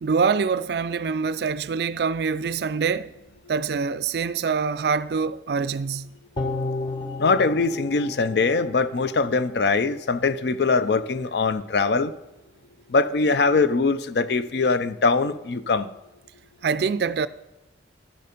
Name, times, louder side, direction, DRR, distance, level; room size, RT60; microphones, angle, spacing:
voice 1, 0.0-3.1 3.5-6.1 16.6-17.3, right 5 dB, 55° right, 0.3 m, -25 dB
sound 1, 6.4-9.7 10.1-10.2, left 2 dB, 25° left, 0.8 m, -33 dB
voice 2, 7.2-12.1 12.9-15.9, left 4 dB, 60° left, 0.4 m, -22 dB
11.0 x 6.7 x 5.1 m
head